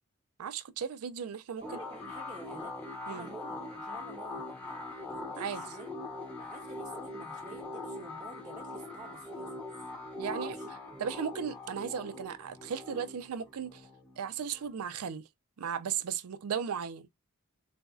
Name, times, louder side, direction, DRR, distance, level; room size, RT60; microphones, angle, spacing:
voice 1, 0.4-1.6 3.1-3.3 5.4-5.6 10.2-10.6 11.0-13.8 14.2-15.3 15.6-17.1, right 7 dB, 80° right, 0.4 m, -36 dB
sound 1, 1.6-14.8, left 2 dB, 5° left, 0.8 m, -42 dB
voice 2, 1.6-2.7 3.1-4.6 5.1-5.9 6.4-9.9 10.3-11.0, right 3 dB, 20° right, 0.6 m, -49 dB
4.0 x 2.5 x 2.3 m
head